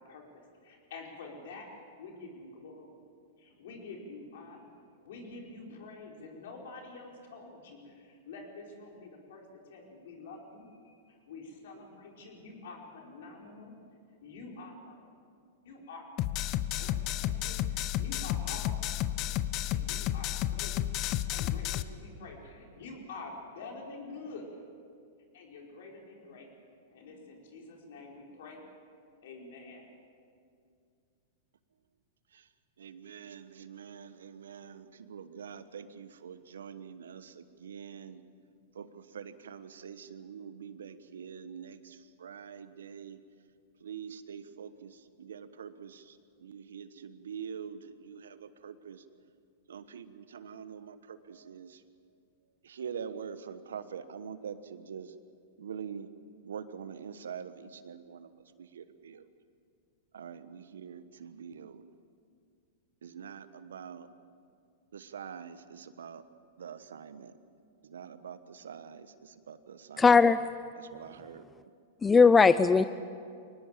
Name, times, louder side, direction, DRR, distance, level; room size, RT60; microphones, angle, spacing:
voice 1, 0.0-2.9 3.4-4.7 5.0-13.7 14.2-15.0 15.6-16.1 16.7-19.3 19.7-20.8 21.3-24.6 25.3-26.5 26.9-28.7 29.2-29.9, left 3 dB, 70° left, 0 dB, 5.1 m, -47 dB
sound 1, 16.2-21.8, left 13 dB, 45° left, 0.8 m, -32 dB
voice 2, 32.8-38.2 38.7-43.2 43.8-49.0 49.7-51.8 52.6-55.1 55.6-56.1 56.4-58.3 58.6-59.3 60.1-61.8 63.0-64.1 64.9-66.2 66.6-67.3 67.8-70.1 70.8-71.4 72.1-72.3 72.8-72.9, right 7 dB, 85° right, 13 dB, 1.2 m, -45 dB
voice 3, 70.0-70.5 72.0-72.8, left 5 dB, 15° left, 14 dB, 0.5 m, -19 dB
23.5 x 19.0 x 7.5 m, 2.3 s
hypercardioid pair, 115°, 0 cm